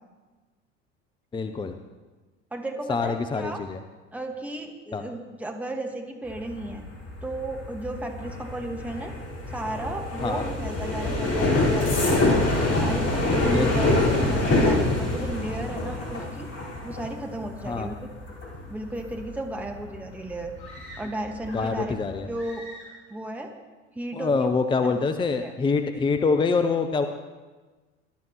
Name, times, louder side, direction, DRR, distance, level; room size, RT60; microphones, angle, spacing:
voice 1, 1.3-1.7 2.9-3.8 4.9-5.0 10.2-10.4 13.4-13.7 17.7-17.9 21.5-22.3 24.1-27.1, left 4 dB, 15° left, 7 dB, 0.7 m, -25 dB
voice 2, 2.5-3.6 4.1-6.8 7.2-9.1 9.5-12.3 12.7-16.5 16.8-18.1 18.7-20.5 21.0-22.0 22.3-22.7 23.1-23.5 23.9-24.5 24.8-25.0 25.4-25.5, right 1 dB, 5° right, 2 dB, 1.6 m, -34 dB
sound 1, 6.3-20.9 21.2-21.7 22.0-22.3, left 2 dB, 40° left, 4.8 m, -26 dB
sound 2, 20.6-21.9 22.3-23.1, equal, 75° left, 5.1 m, -45 dB
21.5 x 12.0 x 3.1 m, 1.3 s
figure-of-eight pair, 75°, 35 cm